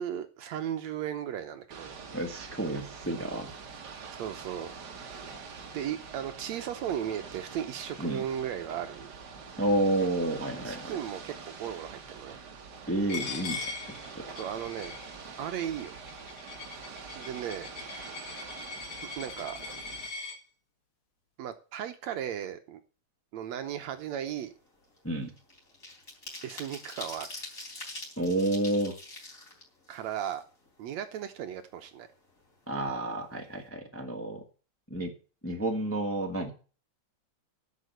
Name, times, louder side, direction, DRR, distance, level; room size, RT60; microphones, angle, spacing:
voice 1, 0.0-2.0 4.1-4.7 5.7-9.1 10.7-12.4 14.4-14.9 15.4-15.9 17.2-18.1 19.2-19.6 21.4-22.8 23.3-24.5 26.4-27.3 27.5-27.6 29.9-30.4 30.8-32.1, right 10 dB, 70° right, 8 dB, 2.0 m, -36 dB
Ocean / Boat Water vehicle, 1.7-20.1, right 5 dB, 45° right, 1.5 m, -45 dB
voice 2, 2.1-3.6 8.0-8.2 9.6-11.0 12.9-13.7 14.1-14.3 25.0-25.3 28.2-28.9 32.7-34.4 34.9-35.1 35.4-36.5, right 1 dB, 5° left, 2 dB, 1.3 m, -30 dB
Coin (dropping), 13.1-20.4, left 4 dB, 45° left, 2.7 m, -41 dB
sound 1, 23.8-24.0 24.3-30.8 31.1-31.2 31.6-32.5 32.8-33.0 33.3-33.6, left 2 dB, 25° left, 4.0 m, -45 dB
10.5 x 6.7 x 8.0 m, 0.36 s
omnidirectional pair, 3.5 m